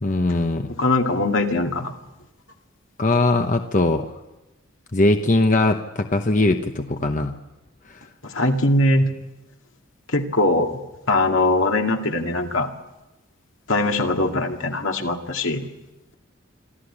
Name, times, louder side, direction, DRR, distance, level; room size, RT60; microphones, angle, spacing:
voice 1, 0.0-0.7 3.0-4.1 4.9-7.4 7.9-8.0, left 2 dB, 40° left, 6 dB, 0.9 m, -20 dB
voice 2, 0.8-1.9 8.2-9.1 10.1-10.7 11.1-12.7 13.7-15.7, left 2 dB, 70° left, 3 dB, 2.2 m, -21 dB
26.0 x 13.5 x 9.9 m, 1.0 s
head